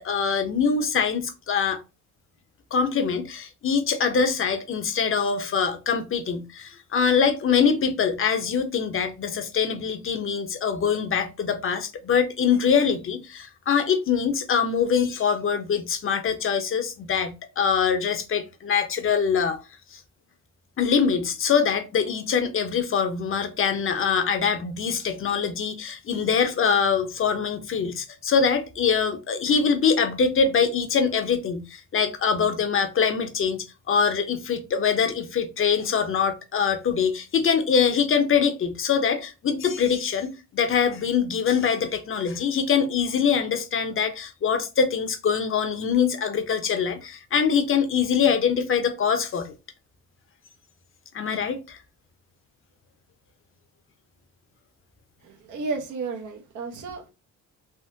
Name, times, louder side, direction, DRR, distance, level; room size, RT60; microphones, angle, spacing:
voice 1, 0.0-1.8 2.7-19.6 19.9-20.0 20.8-49.5 51.1-51.8, left 6 dB, 45° left, 0.6 m, -24 dB
voice 2, 55.2-57.1, right 4 dB, 75° right, 0.8 m, -33 dB
3.5 x 2.1 x 2.7 m
cardioid pair, 90°, 30 cm